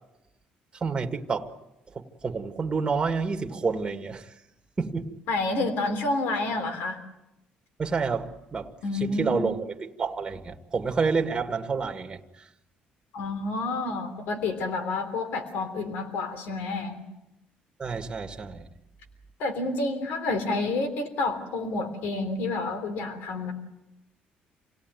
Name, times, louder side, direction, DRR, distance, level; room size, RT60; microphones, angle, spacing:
voice 1, 0.7-1.5 1.9-4.3 4.8-5.2 7.8-8.7 9.0-12.5 17.8-18.7, right 4 dB, 25° right, 1.7 m, -29 dB
voice 2, 5.3-7.0 8.8-9.4 13.1-17.0 19.4-23.5, left 3 dB, 80° left, 3.4 m, -29 dB
27.5 x 18.0 x 9.4 m
cardioid pair, 105°, 3 cm